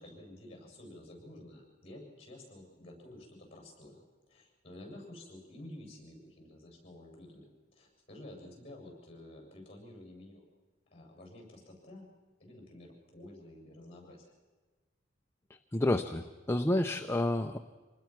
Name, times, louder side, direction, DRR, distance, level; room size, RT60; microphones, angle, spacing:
voice 1, 0.0-10.4 10.9-12.1 12.4-14.3, left 1 dB, 30° left, 1 dB, 7.4 m, -51 dB
voice 2, 15.5-17.6, left 1 dB, 15° left, 6 dB, 0.6 m, -30 dB
26.0 x 20.0 x 6.1 m, 1.3 s
head